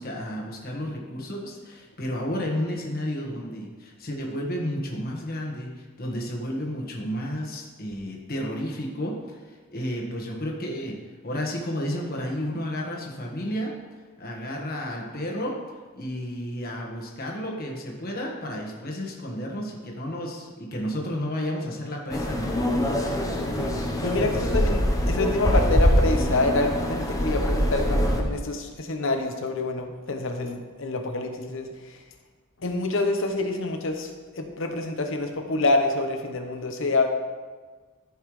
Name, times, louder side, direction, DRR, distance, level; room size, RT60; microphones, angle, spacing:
voice 1, 0.0-13.8 14.2-15.6 15.9-22.6, equal, 45° left, -1 dB, 1.4 m, -32 dB
sound 1, 22.1-28.2, equal, 15° left, 0.9 m, -24 dB
voice 2, 23.3-31.7 32.6-34.1 34.4-37.1, left 2 dB, 65° left, 4 dB, 0.9 m, -27 dB
14.0 x 5.5 x 3.2 m, 1.4 s
head